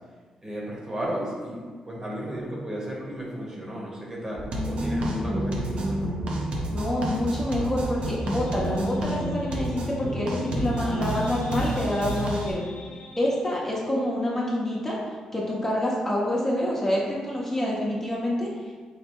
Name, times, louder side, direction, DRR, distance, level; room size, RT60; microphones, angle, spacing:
voice 1, 0.4-6.1, right 1 dB, 30° right, -4 dB, 1.2 m, -34 dB
sound 1, 4.4-4.5 4.8-5.0 5.4-5.6 6.0-6.2 6.6-6.8 7.2-7.4 7.8-8.0 8.4-8.6 9.0-9.2, equal, 5° left, 0.6 m, -40 dB
sound 2, 4.5-12.5, right 1 dB, 60° right, 0.8 m, -29 dB
voice 2, 6.7-12.6 13.2-15.0 15.3-18.5, left 1 dB, 20° left, -5 dB, 1.0 m, -27 dB
sound 3, 8.0-13.5, left 1 dB, 75° left, 0.5 m, -46 dB
4.9 x 2.2 x 4.5 m, 1.5 s
cardioid pair, 80°, 2 cm